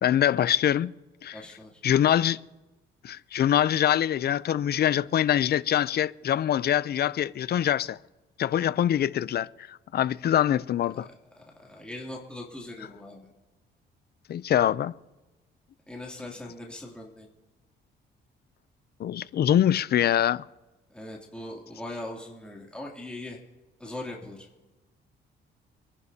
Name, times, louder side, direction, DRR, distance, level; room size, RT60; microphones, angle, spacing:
voice 1, 0.0-0.9 1.2-1.4 1.8-2.4 3.0-8.0 8.4-9.5 9.9-11.1 14.3-14.9 19.0-20.4, left 10 dB, 55° left, 0.5 m, -24 dB
voice 2, 1.3-1.7 10.9-11.0 11.4-13.3 15.9-17.3 20.9-23.4 23.8-24.5, left 1 dB, 5° left, 2.8 m, -40 dB
27.0 x 11.0 x 2.8 m
cardioid pair, 90°, 20 cm